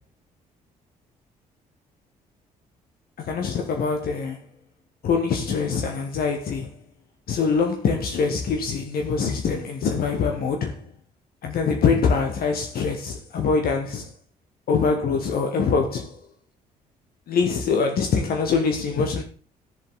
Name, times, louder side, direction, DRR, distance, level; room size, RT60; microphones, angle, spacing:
voice 1, 3.2-4.4 5.0-6.7 7.3-10.8 11.4-14.1 14.7-16.2 17.3-19.2, left 5 dB, 50° left, 1.6 m, -24 dB
14.5 x 7.3 x 3.9 m
figure-of-eight pair, 45°, 20 cm